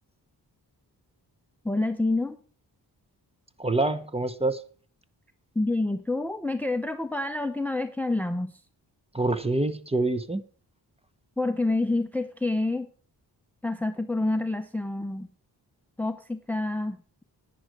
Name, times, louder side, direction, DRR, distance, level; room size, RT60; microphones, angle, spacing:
voice 1, 1.6-2.4 5.5-8.6 11.4-12.9 13.6-15.3 16.0-17.2, left 2 dB, 5° left, 0.7 m, -28 dB
voice 2, 3.6-4.6 9.1-10.4, right 2 dB, 15° right, 1.0 m, -26 dB
10.5 x 9.6 x 4.7 m
cardioid pair, 70°, 41 cm